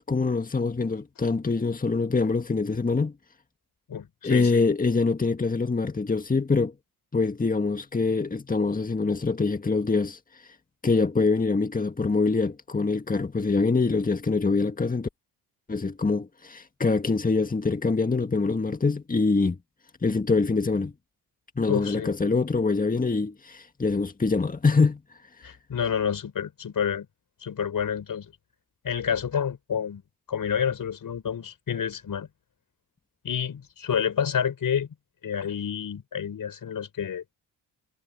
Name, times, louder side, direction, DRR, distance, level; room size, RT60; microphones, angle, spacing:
voice 1, 0.1-3.1 4.2-6.7 7.1-10.2 10.8-15.1 15.7-19.6 20.0-20.9 21.5-25.0, left 4 dB, 20° left, 1.8 m, -24 dB
voice 2, 3.9-4.6 21.7-22.1 25.4-27.1 27.4-28.3 28.8-30.0 30.3-32.3 33.2-34.9 35.2-37.2, left 8 dB, 60° left, 5.0 m, -29 dB
cardioid pair, 65°, 38 cm